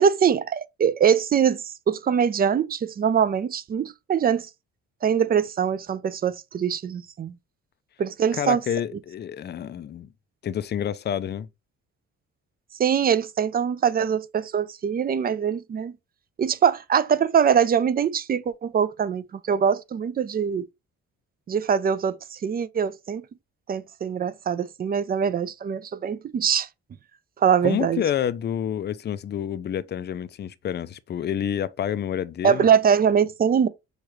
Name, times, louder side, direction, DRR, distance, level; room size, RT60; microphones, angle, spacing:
voice 1, 0.0-4.5 5.0-7.3 8.0-8.6 12.8-15.9 16.4-20.6 21.5-23.2 23.7-26.7 27.4-28.0 32.4-33.7, right 7 dB, 30° right, 0.4 m, -23 dB
voice 2, 8.3-10.1 10.4-11.5 27.6-32.7, left 9 dB, 35° left, 0.4 m, -28 dB
6.3 x 2.3 x 3.1 m
cardioid pair, 90°, 30 cm